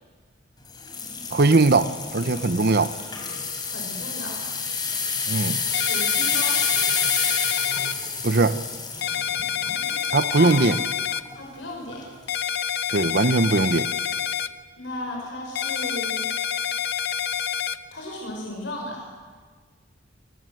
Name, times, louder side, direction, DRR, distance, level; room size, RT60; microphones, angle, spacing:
sound 1, 0.7-10.6 11.2-11.4 11.9-12.0, left 5 dB, 25° left, 4.3 m, -29 dB
voice 1, 1.3-2.9 5.3-5.6 8.2-8.6 10.1-10.8 12.9-13.9, right 3 dB, 55° right, 0.9 m, -20 dB
voice 2, 3.6-4.5 5.8-6.6 10.4-10.5 11.4-12.1 14.8-16.3 17.9-19.1, left 1 dB, 85° left, 5.9 m, -35 dB
sound 2, 5.7-7.9 9.0-11.2 12.3-14.5 15.5-17.8, left 9 dB, 65° left, 0.8 m, -27 dB
29.0 x 22.0 x 7.9 m
head